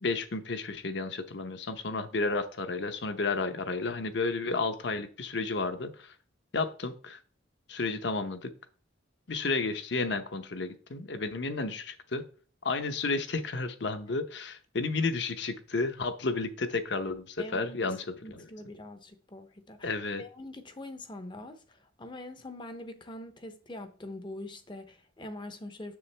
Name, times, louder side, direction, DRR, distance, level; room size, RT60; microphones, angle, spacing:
voice 1, 0.0-6.1 6.5-7.2 7.7-8.5 9.3-12.2 12.6-18.5 19.8-20.2, left 3 dB, 60° left, 0.8 m, -32 dB
voice 2, 17.4-18.0 18.2-19.9 20.2-26.0, left 1 dB, 25° left, 0.6 m, -44 dB
7.1 x 6.4 x 3.3 m
head